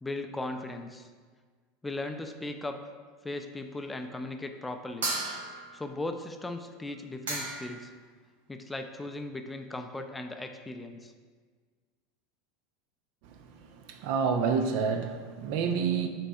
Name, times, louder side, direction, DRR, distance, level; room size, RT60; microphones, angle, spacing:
voice 1, 0.0-1.1 1.8-2.8 3.2-5.1 5.7-7.9 8.5-11.1, left 2 dB, 10° left, 6 dB, 0.4 m, -37 dB
sound 1, 5.0-5.8 6.9-7.0 7.3-7.8, right 2 dB, 75° right, 0.8 m, -34 dB
voice 2, 13.9-16.1, right 6 dB, 60° right, 6 dB, 0.4 m, -28 dB
6.9 x 3.0 x 2.3 m, 1.5 s
hypercardioid pair, 85°, 0 cm